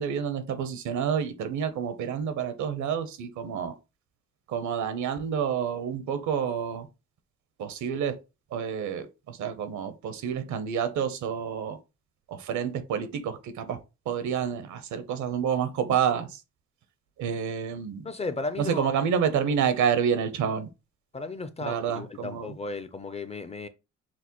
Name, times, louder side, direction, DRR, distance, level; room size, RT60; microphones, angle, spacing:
voice 1, 0.0-3.7 4.5-6.9 7.6-8.2 8.5-11.8 12.3-13.8 14.1-16.3 17.2-18.0 18.6-20.7 21.6-22.6, right 7 dB, 75° right, 0.8 m, -28 dB
voice 2, 18.0-18.9 21.1-23.7, left 3 dB, 20° left, 0.4 m, -35 dB
6.0 x 2.1 x 3.0 m
cardioid pair, 90°, 30 cm